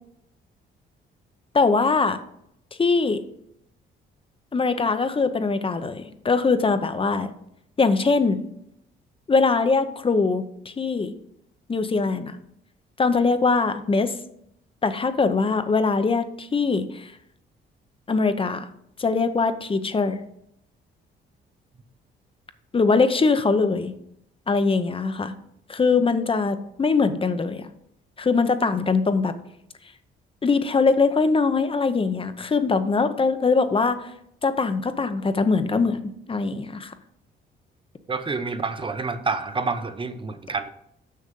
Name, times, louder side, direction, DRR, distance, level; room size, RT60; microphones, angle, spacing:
voice 1, 1.5-2.2 2.8-3.2 4.5-7.3 7.8-8.4 9.3-11.1 11.7-12.4 13.0-14.1 14.8-17.1 18.1-18.7 19.0-20.2 22.7-23.9 24.5-25.3 25.7-27.7 28.2-29.3 30.4-34.1 34.4-36.0 36.3-36.9, left 4 dB, 25° left, 10 dB, 0.7 m, -22 dB
voice 2, 38.1-40.7, right 4 dB, 25° right, 10 dB, 0.8 m, -28 dB
6.6 x 6.2 x 5.3 m, 0.75 s
cardioid pair, 90°, 20 cm